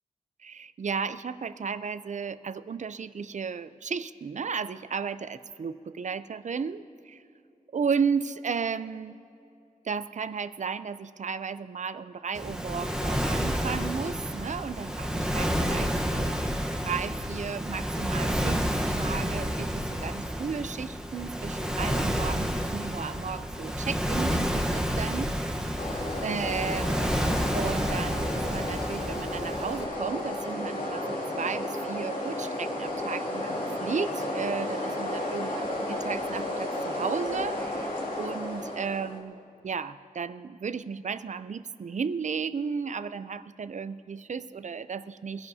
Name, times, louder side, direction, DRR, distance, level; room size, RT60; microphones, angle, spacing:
voice 1, 0.4-7.2 7.7-9.2 9.8-16.4 16.8-25.7 26.2-45.5, right 6 dB, 55° right, 13 dB, 0.5 m, -34 dB
Waves surf, 12.3-29.8, equal, 5° right, 1.0 m, -30 dB
sound 1, 25.8-39.2, left 1 dB, 65° left, 2.6 m, -33 dB
23.5 x 16.0 x 2.8 m, 2.6 s
wide cardioid pair, 105°, 15 cm